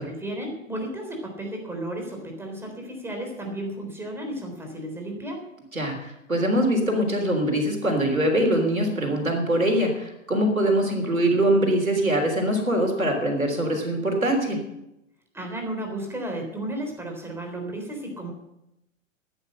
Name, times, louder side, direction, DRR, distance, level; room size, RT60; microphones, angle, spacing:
voice 1, 0.0-5.5 15.3-18.3, right 1 dB, 5° right, 2 dB, 3.9 m, -33 dB
voice 2, 5.7-14.6, right 1 dB, 90° right, 3 dB, 3.6 m, -23 dB
15.0 x 10.0 x 6.5 m, 0.87 s
figure-of-eight pair, 105°, 40 cm